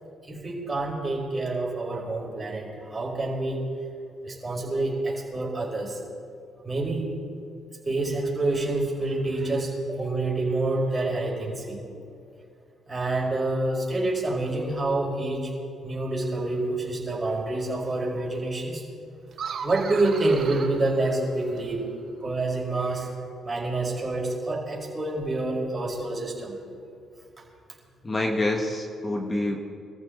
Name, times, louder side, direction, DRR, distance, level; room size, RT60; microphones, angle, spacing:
voice 1, 0.3-3.6 4.2-6.0 6.6-7.1 7.8-11.8 12.9-15.5 15.8-18.8 19.4-21.8 22.2-23.1 23.4-26.6, right 2 dB, 25° right, -2 dB, 5.2 m, -27 dB
sound 1, 19.3-21.8, right 6 dB, 60° right, 1.5 m, -37 dB
voice 2, 28.0-29.6, left 2 dB, 25° left, 2 dB, 1.6 m, -26 dB
24.5 x 14.5 x 4.1 m, 2.5 s
cardioid pair, 90°, 0 cm